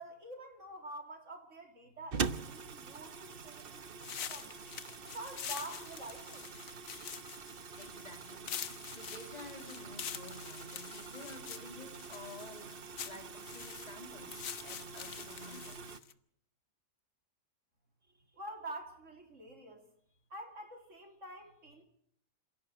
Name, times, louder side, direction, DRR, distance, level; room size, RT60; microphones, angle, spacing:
voice 1, 0.0-4.5 5.0-6.5 18.1-19.9 20.3-21.8, right 1 dB, 60° right, 4 dB, 3.7 m, -47 dB
sound 1, 2.1-16.0, right 5 dB, 45° right, 1.1 m, -44 dB
sound 2, 4.0-16.1, left 8 dB, 75° left, 1.4 m, -45 dB
voice 2, 7.8-8.6 9.0-15.8, left 2 dB, 30° left, 6 dB, 2.4 m, -51 dB
27.0 x 17.0 x 6.2 m, 0.64 s
omnidirectional pair, 1.4 m